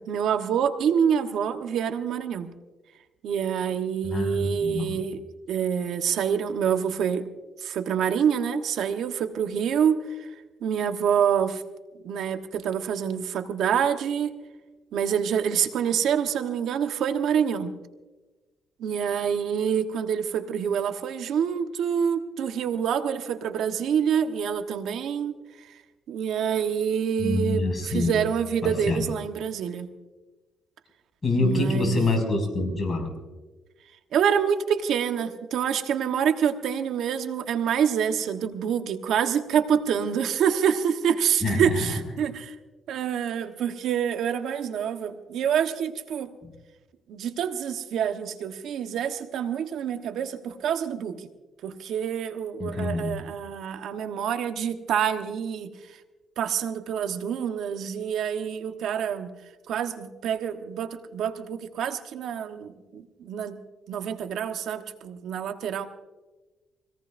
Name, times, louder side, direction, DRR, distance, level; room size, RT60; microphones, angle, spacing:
voice 1, 0.0-2.5 3.2-5.2 5.5-7.3 7.6-10.3 10.6-11.6 12.0-14.3 14.9-17.7 18.8-25.4 26.1-29.9 31.4-32.0 34.1-42.5 42.9-46.3 47.1-51.3 51.6-55.7 56.4-59.3 59.7-63.6 63.9-65.9, right 8 dB, 75° right, 8 dB, 1.1 m, -26 dB
voice 2, 4.0-4.9 27.2-28.1 28.6-29.0 31.2-33.1 41.4-41.9 46.4-46.5 52.6-53.2, left 2 dB, 30° left, 2 dB, 6.0 m, -26 dB
24.5 x 18.0 x 2.6 m, 1.2 s
cardioid pair, 90°, 0 cm